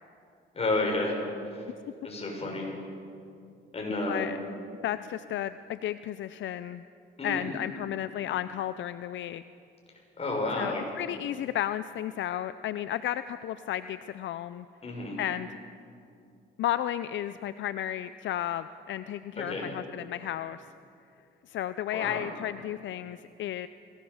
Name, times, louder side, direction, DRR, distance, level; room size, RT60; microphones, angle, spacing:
voice 1, 0.5-1.2 1.5-1.6 2.0-2.7 3.7-4.3 7.2-7.6 10.2-10.8 14.8-15.2 19.4-19.6 21.9-22.2, left 2 dB, 30° left, -1 dB, 6.6 m, -31 dB
voice 2, 4.1-4.4 4.8-6.8 7.2-9.4 10.6-14.7 15.2-15.5 16.6-20.6 21.5-23.7, left 11 dB, 70° left, 13 dB, 0.5 m, -33 dB
21.5 x 17.0 x 7.2 m, 2.5 s
cardioid pair, 90°, 20 cm